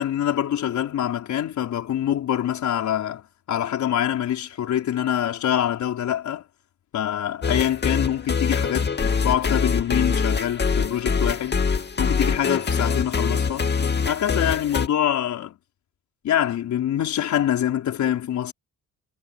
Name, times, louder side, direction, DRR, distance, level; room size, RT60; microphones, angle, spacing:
voice 1, 0.0-3.2 3.5-6.4 6.9-11.6 12.0-13.7 14.1-15.6 16.2-18.5, left 11 dB, 70° left, 4.9 m, -25 dB
sound 1, 7.4-14.9, left 5 dB, 35° left, 2.5 m, -24 dB
cardioid pair, 90°, 30 cm